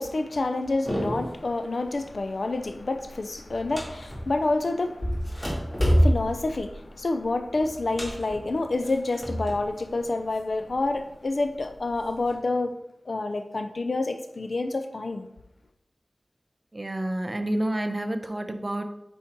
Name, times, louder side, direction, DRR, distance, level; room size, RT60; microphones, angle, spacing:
voice 1, 0.0-12.7 13.1-15.3, left 2 dB, 70° left, 0.6 m, -28 dB
sound 1, 0.9-1.5 1.9-2.3 2.6-4.5 5.0-9.7 10.0-11.0 11.6-12.4, equal, 20° left, 2.2 m, -28 dB
voice 2, 16.7-18.8, right 1 dB, 35° right, 0.8 m, -29 dB
8.1 x 4.4 x 4.5 m
wide cardioid pair, 55°, 0 cm